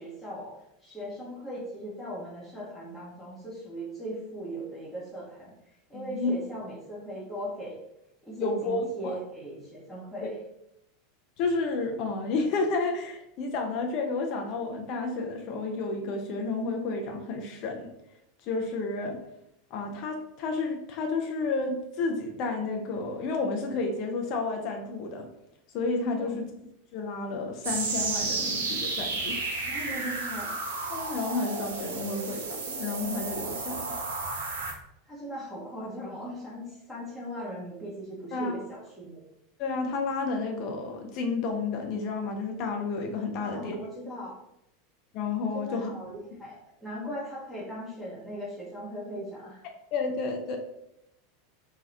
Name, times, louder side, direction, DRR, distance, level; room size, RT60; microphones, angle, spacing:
voice 1, 0.0-7.8 8.2-10.4 26.2-26.4 29.6-30.5 35.0-39.2 43.4-44.3 45.5-49.6, equal, ahead, -9 dB, 0.9 m, -39 dB
voice 2, 5.9-6.3 8.4-9.1 10.2-10.3 11.4-17.9 18.4-19.2 19.7-25.3 25.7-26.5 26.9-29.4 30.9-34.0 38.3-38.6 39.6-43.8 45.1-45.9 49.9-50.6, left 3 dB, 45° left, 3 dB, 0.5 m, -31 dB
sound 1, 27.6-34.7, right 3 dB, 70° right, 0.5 m, -32 dB
2.7 x 2.3 x 3.2 m, 0.84 s
figure-of-eight pair, 85°, 0 cm